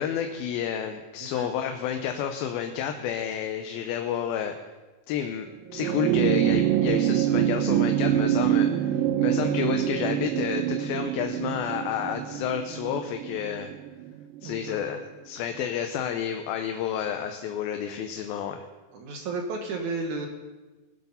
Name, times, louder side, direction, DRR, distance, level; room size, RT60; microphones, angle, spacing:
voice 1, 0.0-4.5 5.1-5.5 5.7-13.7 14.4-15.0 15.3-18.6, left 9 dB, 80° left, 6 dB, 2.6 m, -30 dB
sound 1, 5.7-14.4 15.6-15.7, right 11 dB, 80° right, 2.1 m, -25 dB
voice 2, 14.4-15.0 18.2-18.3 18.9-20.3, right 3 dB, 65° right, 4 dB, 2.2 m, -33 dB
20.5 x 8.0 x 5.6 m, 1.2 s
omnidirectional pair, 4.3 m